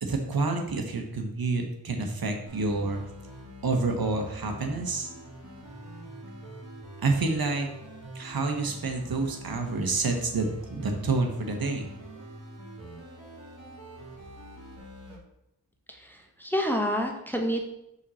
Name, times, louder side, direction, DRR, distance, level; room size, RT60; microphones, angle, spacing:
voice 1, 0.0-3.0 3.6-5.1 7.0-7.7 8.1-11.9, right 3 dB, 75° right, 4 dB, 1.2 m, -28 dB
sound 1, 2.5-15.2, right 1 dB, 45° right, 2.5 m, -45 dB
voice 2, 15.9-17.6, equal, 5° left, 2 dB, 1.1 m, -28 dB
5.6 x 4.2 x 6.2 m, 0.82 s
wide cardioid pair, 90°, 37 cm